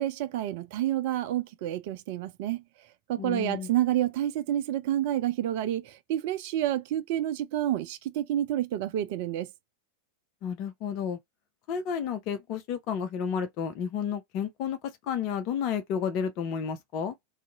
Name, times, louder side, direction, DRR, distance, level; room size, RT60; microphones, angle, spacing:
voice 1, 0.0-2.6 3.1-9.5, right 12 dB, 50° right, 0.4 m, -29 dB
voice 2, 3.2-3.7 10.4-11.2 11.7-14.8 15.0-17.1, left 7 dB, 40° left, 0.5 m, -31 dB
2.6 x 2.4 x 3.9 m
figure-of-eight pair, 90°, 0 cm